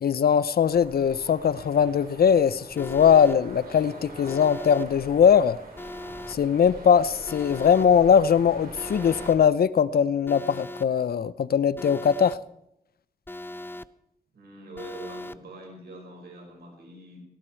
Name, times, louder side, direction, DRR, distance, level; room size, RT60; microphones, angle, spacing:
voice 1, 0.0-5.6 6.3-12.4, left 7 dB, 70° left, 17 dB, 0.6 m, -21 dB
sound 1, 0.6-9.3, right 2 dB, 65° right, 6.3 m, -44 dB
Alarm, 2.8-3.4 4.3-4.9 5.8-6.4 7.3-7.9 8.8-9.4 10.3-10.9 11.8-12.4 13.3-13.9 14.8-15.4, left 1 dB, 15° left, 0.7 m, -39 dB
voice 2, 14.3-17.2, right 1 dB, 90° right, 2 dB, 5.5 m, -44 dB
18.5 x 16.0 x 4.5 m, 0.82 s
cardioid pair, 80°, 16 cm